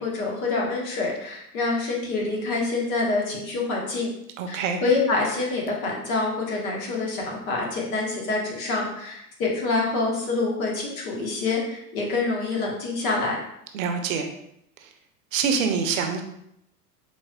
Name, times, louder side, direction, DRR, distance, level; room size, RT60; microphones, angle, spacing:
voice 1, 0.0-4.1 4.5-13.4, left 3 dB, 60° left, -1 dB, 1.4 m, -26 dB
voice 2, 4.4-4.8 13.7-14.3 14.8-14.9 15.3-16.2, right 6 dB, 55° right, 5 dB, 0.7 m, -25 dB
5.2 x 3.2 x 2.3 m, 0.77 s
figure-of-eight pair, 85°, 48 cm